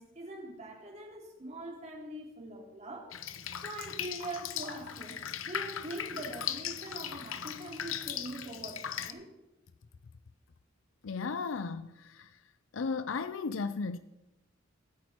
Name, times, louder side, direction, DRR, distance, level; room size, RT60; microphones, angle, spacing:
voice 1, 0.0-3.1 3.5-5.2 5.4-9.3, right 1 dB, 35° right, 3.7 m, -43 dB
Drip, 3.1-9.1, left 9 dB, 90° left, 0.9 m, -38 dB
voice 2, 11.0-12.4 12.7-14.0, left 4 dB, 70° left, 0.5 m, -35 dB
23.5 x 8.7 x 4.5 m
head